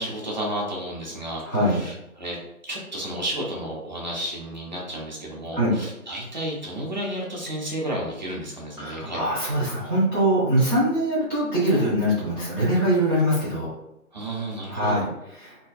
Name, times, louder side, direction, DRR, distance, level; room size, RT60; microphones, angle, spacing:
voice 1, 0.0-2.4 2.6-9.6 14.1-15.0, right 1 dB, 35° right, -3 dB, 0.5 m, -32 dB
voice 2, 1.4-1.8 5.5-5.8 8.8-13.7 14.7-15.6, right 1 dB, 10° left, -13 dB, 0.8 m, -23 dB
2.5 x 2.1 x 2.2 m, 0.86 s
figure-of-eight pair, 145°, 44 cm